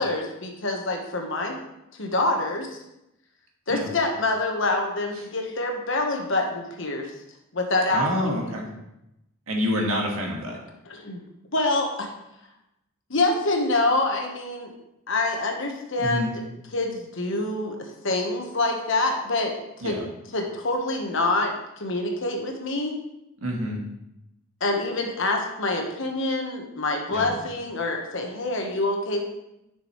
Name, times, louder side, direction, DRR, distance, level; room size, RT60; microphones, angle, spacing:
voice 1, 0.0-1.6 2.0-2.7 3.7-7.1 7.5-8.5 10.9-11.2 11.5-12.1 13.1-14.7 15.1-16.4 16.7-20.0 20.3-23.0 24.6-29.2, left 2 dB, 65° left, 2 dB, 1.3 m, -26 dB
voice 2, 7.9-8.7 9.5-10.6 16.0-16.3 19.8-20.1 23.4-23.8 27.1-27.4, equal, 80° right, 0 dB, 1.8 m, -27 dB
10.0 x 6.2 x 3.2 m, 0.87 s
head